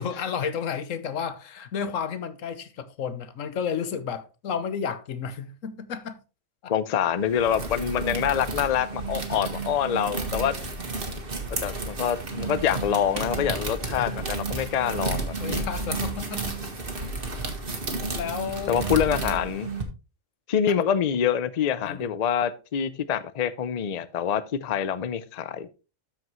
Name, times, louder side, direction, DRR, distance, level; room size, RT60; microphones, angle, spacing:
voice 1, 0.0-6.2 6.6-6.7 13.9-14.2 15.4-17.2 18.1-18.8 20.7-20.8 21.8-22.1, left 7 dB, 85° left, 1.3 m, -32 dB
voice 2, 6.7-10.5 11.5-15.6 18.7-19.7 20.5-25.7, left 8 dB, 45° left, 0.5 m, -26 dB
sound 1, 7.2-19.8, right 3 dB, 45° right, 1.7 m, -32 dB
13.0 x 5.2 x 3.1 m
omnidirectional pair, 1.3 m